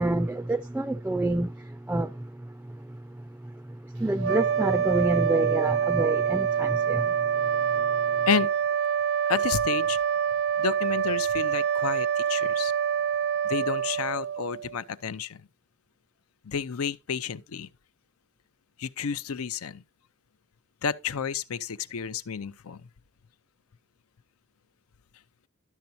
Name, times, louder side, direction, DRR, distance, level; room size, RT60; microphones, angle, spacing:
voice 1, 0.0-2.3 3.9-7.1, right 2 dB, 10° right, 0.4 m, -27 dB
sound 1, 4.2-14.8, right 8 dB, 90° right, 0.8 m, -26 dB
voice 2, 9.3-10.0 10.6-12.7 13.4-15.5 16.4-17.7 18.8-19.8 20.8-22.9, left 6 dB, 85° left, 0.6 m, -30 dB
12.0 x 6.9 x 2.7 m
head